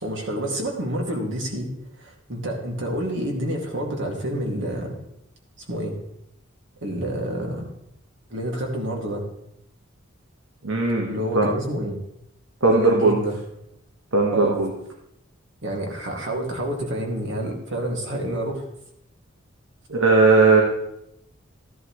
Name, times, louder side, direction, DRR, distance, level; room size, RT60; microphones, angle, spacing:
voice 1, 0.0-1.7 2.0-4.9 5.7-5.9 6.8-7.6 8.3-9.2 11.1-12.0 12.6-13.4 14.3-14.6 15.6-18.6, right 1 dB, 65° right, 1 dB, 2.3 m, -28 dB
voice 2, 10.6-11.5 12.6-13.2 14.1-14.7 19.9-20.6, right 3 dB, 85° right, 0 dB, 1.5 m, -18 dB
14.0 x 11.0 x 3.2 m, 0.79 s
head